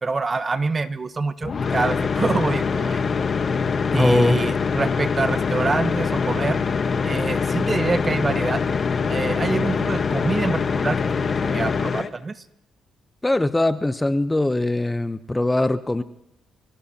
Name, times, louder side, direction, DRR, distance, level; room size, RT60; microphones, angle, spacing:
voice 1, 0.0-3.0 3.9-6.6 7.0-8.6 9.1-12.4, right 4 dB, 30° right, 12 dB, 1.0 m, -26 dB
sound 1, 1.4-12.1, left 5 dB, 45° left, 1.1 m, -23 dB
voice 2, 3.9-4.4 13.2-16.0, left 2 dB, 10° left, 12 dB, 0.7 m, -21 dB
27.5 x 17.0 x 2.8 m, 0.83 s
cardioid pair, 90°, 0 cm